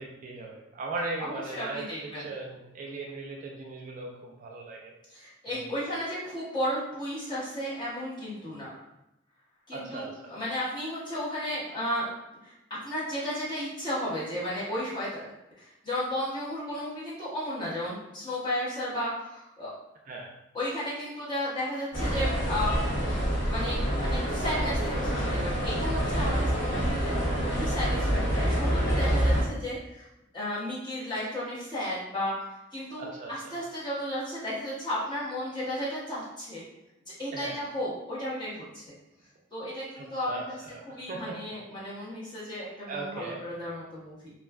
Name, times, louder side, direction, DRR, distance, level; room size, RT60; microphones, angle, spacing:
voice 1, 0.0-4.9 5.5-5.7 9.7-10.3 20.1-20.3 27.3-27.8 33.0-33.5 37.3-37.6 40.0-41.4 42.9-43.4, right 3 dB, 40° right, -1 dB, 0.3 m, -38 dB
voice 2, 1.2-2.3 5.1-8.8 9.7-12.1 12.4-19.7 20.5-23.0 23.4-30.1 30.3-36.6 37.2-38.8 39.5-40.6 40.9-44.3, equal, 25° left, -9 dB, 1.0 m, -34 dB
sound 1, 21.9-29.4, equal, 65° left, 0.8 m, -27 dB
2.4 x 2.3 x 2.2 m, 0.90 s
head